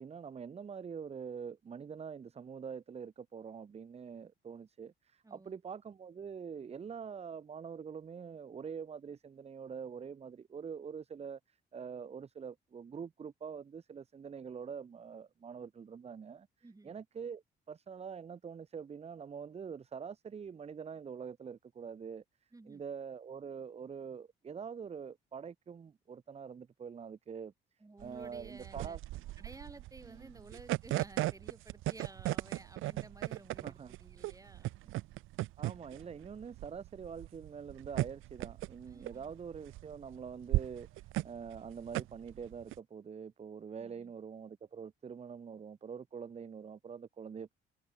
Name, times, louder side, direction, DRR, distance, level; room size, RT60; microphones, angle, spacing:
voice 1, 0.0-16.5 16.8-22.2 22.7-27.5 28.0-29.0 30.0-30.4 33.6-34.0 35.6-47.5, right 6 dB, 30° right, 0.7 m, -45 dB
voice 2, 5.2-5.6 16.6-16.9 22.5-22.8 27.8-29.0 29.4-34.7 38.9-39.3 43.8-44.1, right 2 dB, 15° right, 2.5 m, -54 dB
sound 1, 28.0-42.8, right 17 dB, 85° right, 0.7 m, -37 dB
cardioid pair, 90°, 20 cm